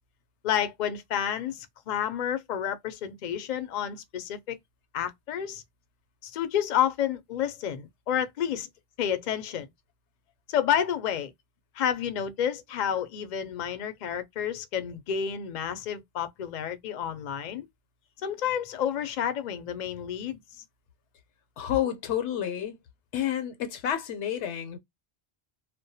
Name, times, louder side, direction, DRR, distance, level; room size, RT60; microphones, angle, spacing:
voice 1, 0.4-4.6 4.9-5.6 6.2-8.7 9.0-9.7 10.5-11.3 11.7-17.6 18.2-20.6, left 9 dB, 55° left, 0.5 m, -30 dB
voice 2, 21.6-22.8 23.1-24.8, left 10 dB, 80° left, 0.9 m, -29 dB
2.2 x 2.1 x 2.6 m
omnidirectional pair, 1.2 m